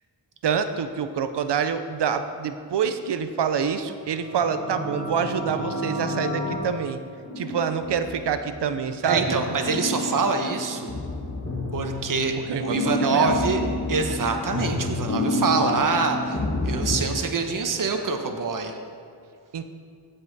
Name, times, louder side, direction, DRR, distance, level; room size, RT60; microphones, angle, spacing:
voice 1, 0.4-7.0 7.4-9.4 12.5-13.3 19.5-19.6, right 7 dB, 75° right, 10 dB, 0.6 m, -26 dB
sound 1, 4.0-6.6, equal, 80° left, 2.0 m, -31 dB
sound 2, 6.1-6.6 7.2-8.7 9.1-17.0, left 2 dB, 30° left, 1.4 m, -29 dB
voice 2, 9.0-10.9 11.7-13.6 13.9-18.7, right 4 dB, 50° right, 4 dB, 1.0 m, -25 dB
16.0 x 5.6 x 4.1 m, 2.2 s
wide cardioid pair, 75°, 41 cm